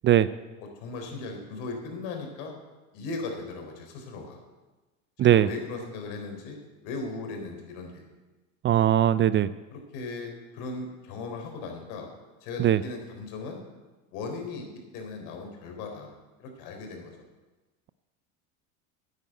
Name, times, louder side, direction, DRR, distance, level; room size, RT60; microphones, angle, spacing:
voice 1, 0.6-2.5 2.9-4.4 5.2-6.6 6.8-8.0 9.7-12.1 12.4-13.6 14.1-14.7 14.9-16.1 16.4-17.1, left 3 dB, 70° left, 3 dB, 3.9 m, -37 dB
voice 2, 8.6-9.5 12.6-12.8, right 11 dB, 30° right, 16 dB, 0.4 m, -20 dB
10.5 x 9.5 x 8.0 m, 1.2 s
supercardioid pair, 95°, 38 cm